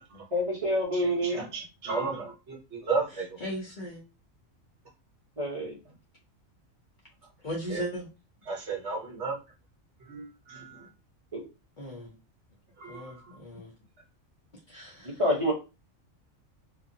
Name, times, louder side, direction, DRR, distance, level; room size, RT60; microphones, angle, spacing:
voice 1, 0.3-1.4 5.4-5.8 11.3-11.5 15.0-15.5, equal, 30° right, -3 dB, 0.8 m, -27 dB
voice 2, 0.9-3.3 5.6-5.7 7.7-7.8 8.5-9.4 10.0-10.9 12.8-13.4, right 4 dB, 60° right, -1 dB, 1.2 m, -34 dB
voice 3, 3.4-4.0 7.4-8.1 11.8-12.1 12.9-13.7 14.7-15.2, equal, 40° left, -3 dB, 0.9 m, -37 dB
2.7 x 2.4 x 2.6 m, 0.29 s
omnidirectional pair, 1.4 m